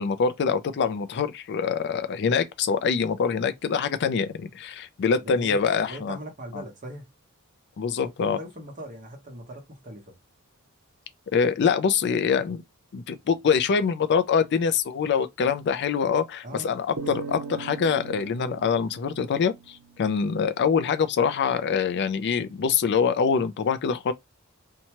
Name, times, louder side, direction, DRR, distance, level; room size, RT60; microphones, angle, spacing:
voice 1, 0.0-6.2 6.5-6.6 7.8-8.4 11.3-12.6 12.9-24.1, left 6 dB, 50° left, 0.4 m, -24 dB
voice 2, 5.1-7.0 8.2-10.2 16.4-16.7, right 1 dB, 40° right, 1.0 m, -40 dB
sound 1, 17.0-20.4, right 4 dB, 85° right, 0.5 m, -39 dB
2.8 x 2.2 x 2.9 m
head